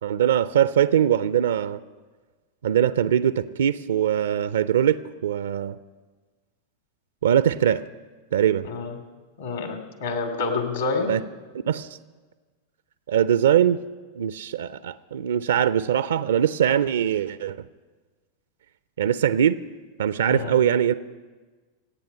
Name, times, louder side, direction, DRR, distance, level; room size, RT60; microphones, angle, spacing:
voice 1, 0.0-1.8 2.6-5.8 7.2-7.8 8.3-8.7 11.1-11.2 11.7-12.0 13.1-13.8 14.2-17.6 19.0-19.6 20.0-20.9, right 9 dB, 65° right, 15 dB, 0.4 m, -22 dB
voice 2, 9.4-11.1 20.3-20.5, left 3 dB, 65° left, 5 dB, 2.6 m, -28 dB
26.5 x 8.9 x 5.5 m, 1.3 s
figure-of-eight pair, 90°, 0 cm